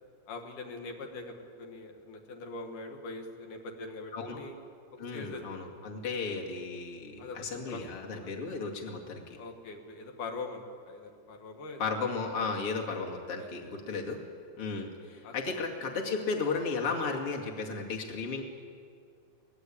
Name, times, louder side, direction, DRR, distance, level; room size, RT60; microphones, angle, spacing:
voice 1, 0.3-4.5 4.9-5.4 7.2-7.8 8.2-8.3 9.4-12.0 13.1-13.7 15.2-15.6, left 3 dB, 80° left, 3 dB, 3.3 m, -43 dB
voice 2, 5.0-9.4 11.8-14.2 14.6-18.4, left 4 dB, 45° left, 0 dB, 3.1 m, -34 dB
24.0 x 19.5 x 8.6 m, 2.2 s
omnidirectional pair, 3.6 m